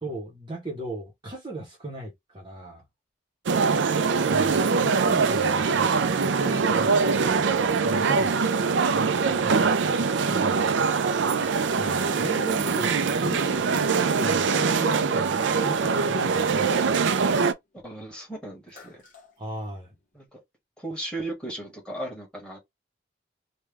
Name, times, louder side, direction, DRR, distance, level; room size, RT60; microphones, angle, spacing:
voice 1, 0.0-2.8 4.3-8.4 8.9-9.8 10.3-10.8 11.8-17.4 19.4-19.9, right 1 dB, 25° right, 0.9 m, -37 dB
sound 1, 3.5-17.5, right 5 dB, 75° right, 0.4 m, -23 dB
Splash splatter, 13.6-16.2 16.7-18.1 18.5-20.2, left 3 dB, 45° left, 1.0 m, -49 dB
voice 2, 17.8-19.0 20.1-20.4 20.8-22.6, right 1 dB, 5° left, 1.5 m, -36 dB
3.2 x 2.2 x 3.3 m
head